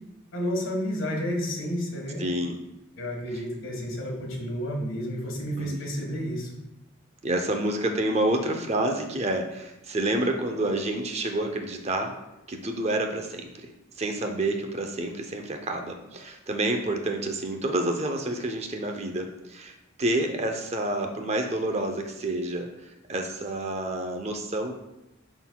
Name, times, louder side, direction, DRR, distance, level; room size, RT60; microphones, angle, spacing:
voice 1, 0.3-2.3 3.0-6.5, equal, 70° left, 0 dB, 1.5 m, -31 dB
voice 2, 2.2-2.6 5.6-5.8 7.2-12.1 12.5-13.7 14.0-22.7 23.1-24.7, right 1 dB, 30° right, 4 dB, 0.6 m, -28 dB
11.0 x 4.0 x 2.3 m, 0.92 s
head